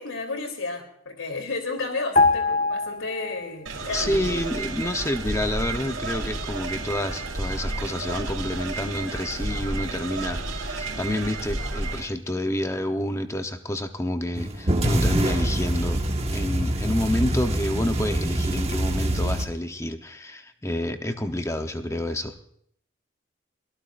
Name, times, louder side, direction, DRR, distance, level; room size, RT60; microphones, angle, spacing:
voice 1, 0.0-4.4, left 3 dB, 80° left, 5 dB, 3.4 m, -32 dB
sound 1, 2.2-3.8 4.1-4.3, left 3 dB, 40° left, 1.1 m, -23 dB
sound 2, 3.7-12.1, right 2 dB, 80° right, 3.7 m, -31 dB
voice 2, 3.9-16.0 16.3-22.5, left 1 dB, 15° left, 6 dB, 0.9 m, -29 dB
sound 3, 14.4-19.5, right 1 dB, 30° right, 1.5 m, -25 dB
24.0 x 17.5 x 2.6 m, 0.68 s
head